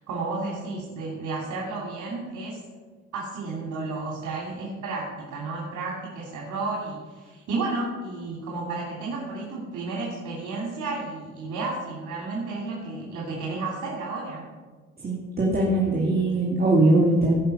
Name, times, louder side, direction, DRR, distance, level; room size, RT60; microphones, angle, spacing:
voice 1, 0.0-2.6 3.1-14.5, right 3 dB, 75° right, -4 dB, 3.0 m, -32 dB
voice 2, 15.0-17.4, right 2 dB, 30° right, -3 dB, 2.3 m, -21 dB
16.5 x 5.7 x 6.7 m, 1.4 s
cardioid pair, 90°, 30 cm